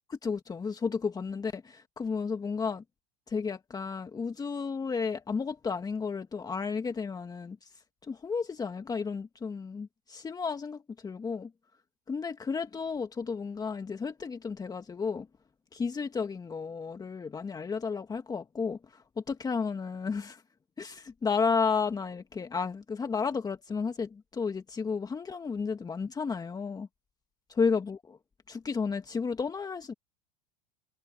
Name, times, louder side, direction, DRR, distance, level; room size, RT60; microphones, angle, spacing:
voice 1, 0.1-2.8 3.3-7.7 8.1-11.5 12.1-15.3 15.7-20.4 20.8-26.9 27.5-28.2 28.5-29.9, left 5 dB, 20° left, 1.7 m, -32 dB
hypercardioid pair, 100°, 20 cm